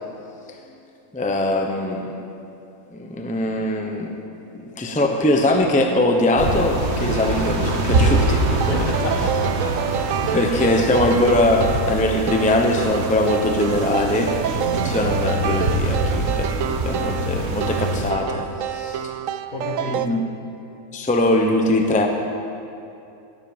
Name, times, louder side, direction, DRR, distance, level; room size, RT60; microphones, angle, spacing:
voice 1, 1.1-2.1 2.9-4.2 4.5-8.9 10.3-14.3 14.8-19.1 19.9-20.3 20.9-22.1, left 1 dB, 5° left, 3 dB, 0.8 m, -21 dB
sound 1, 6.4-18.1, right 2 dB, 50° right, 1.4 m, -24 dB
sound 2, 7.6-20.1, right 10 dB, 70° right, 0.9 m, -28 dB
voice 2, 8.7-9.8 10.2-10.4 19.5-20.2, left 3 dB, 60° left, 1 dB, 2.0 m, -30 dB
17.5 x 8.0 x 7.3 m, 2.7 s
omnidirectional pair, 1.6 m